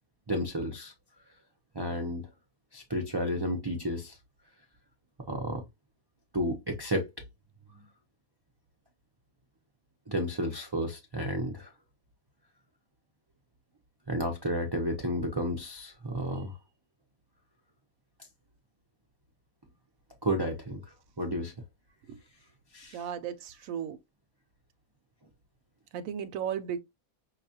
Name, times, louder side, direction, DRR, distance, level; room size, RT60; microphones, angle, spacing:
voice 1, 0.3-0.9 1.7-2.3 2.7-4.2 5.3-5.6 6.3-7.1 10.1-11.7 14.1-16.5 20.2-20.8 21.2-21.5 22.7-23.0, equal, 30° right, 0.4 m, -32 dB
voice 2, 22.9-24.0 25.9-26.8, right 8 dB, 75° right, 1.0 m, -35 dB
5.6 x 2.3 x 2.7 m
omnidirectional pair, 1.5 m